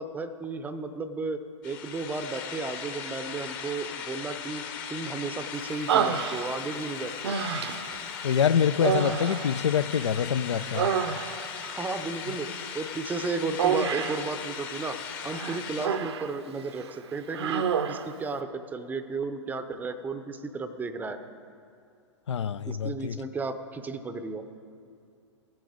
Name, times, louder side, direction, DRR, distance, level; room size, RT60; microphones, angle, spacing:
voice 1, 0.0-4.6 4.9-7.3 11.6-15.0 15.2-21.2 22.7-24.4, right 3 dB, 10° right, 10 dB, 0.6 m, -34 dB
sound 1, 1.6-15.9, left 7 dB, 40° left, 1.2 m, -38 dB
Human voice, 5.9-6.8 7.2-8.0 8.8-10.2 10.5-11.6 13.6-14.3 15.3-16.3 16.7-16.9 17.3-18.1, right 7 dB, 60° right, 0.6 m, -28 dB
voice 2, 8.2-10.9 12.3-12.4 22.3-23.2, left 8 dB, 70° left, 17 dB, 0.4 m, -26 dB
15.0 x 7.8 x 4.9 m, 2.4 s
figure-of-eight pair, 105°, 16 cm